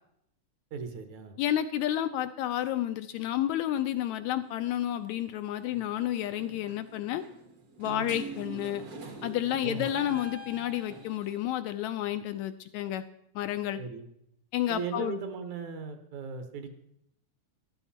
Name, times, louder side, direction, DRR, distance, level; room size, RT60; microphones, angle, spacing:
voice 1, 0.7-1.4 7.9-8.1 9.6-9.9 13.8-14.0 14.7-16.7, right 5 dB, 70° right, 8 dB, 2.5 m, -37 dB
voice 2, 1.4-7.2 7.8-8.8 9.2-13.0 13.4-13.8 14.5-15.2, left 12 dB, 80° left, 10 dB, 1.7 m, -30 dB
sound 1, 4.5-4.7 5.7-5.9 6.3-11.4, right 2 dB, 50° right, 1.1 m, -44 dB
13.5 x 12.0 x 4.2 m, 0.75 s
omnidirectional pair, 3.5 m